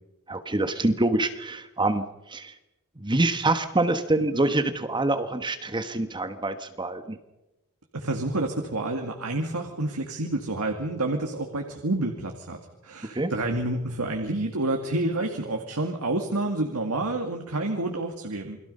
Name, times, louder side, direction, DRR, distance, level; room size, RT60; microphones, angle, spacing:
voice 1, 0.3-2.0 2.3-2.5 3.0-7.2 13.1-13.3, right 2 dB, 20° right, 9 dB, 1.3 m, -25 dB
voice 2, 7.9-18.6, right 2 dB, 80° right, 3 dB, 2.2 m, -29 dB
29.0 x 22.5 x 5.6 m, 0.98 s
head